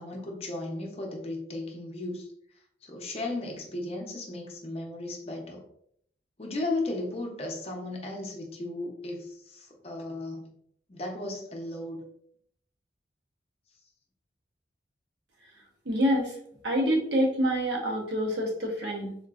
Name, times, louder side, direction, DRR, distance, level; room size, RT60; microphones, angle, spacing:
voice 1, 0.0-2.3 2.8-5.6 6.4-10.5 10.9-12.0, left 2 dB, 35° left, 1 dB, 0.6 m, -35 dB
voice 2, 15.8-16.4 16.6-19.2, equal, 75° right, -1 dB, 0.9 m, -26 dB
3.7 x 2.6 x 2.4 m, 0.68 s
head